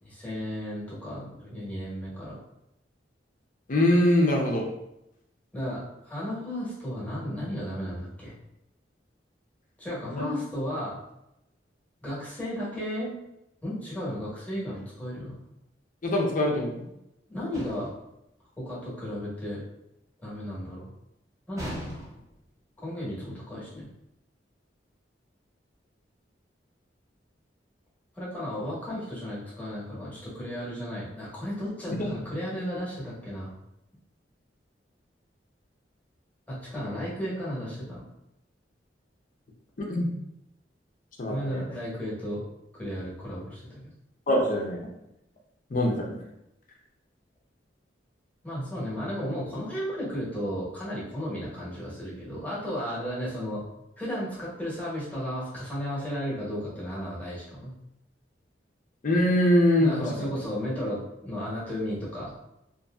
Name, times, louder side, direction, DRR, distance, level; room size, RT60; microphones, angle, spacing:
voice 1, 0.0-2.4 5.5-8.3 9.8-11.0 12.0-13.1 13.6-15.4 17.3-17.9 18.6-19.6 20.2-20.9 21.5-22.1 22.8-23.9 28.1-33.5 36.5-38.1 41.3-42.4 42.7-43.9 48.4-53.6 54.0-57.7 59.8-62.3, equal, 10° left, -8 dB, 1.0 m, -34 dB
voice 2, 3.7-4.7 10.0-10.3 16.0-16.9 31.9-32.1 39.8-40.1 41.2-41.6 44.3-44.8 45.7-46.1 59.0-60.3, left 1 dB, 45° left, 0 dB, 0.6 m, -23 dB
sound 1, 17.5-18.1 21.6-22.4, equal, 20° right, 0.7 m, -38 dB
2.6 x 2.6 x 2.3 m, 0.85 s
head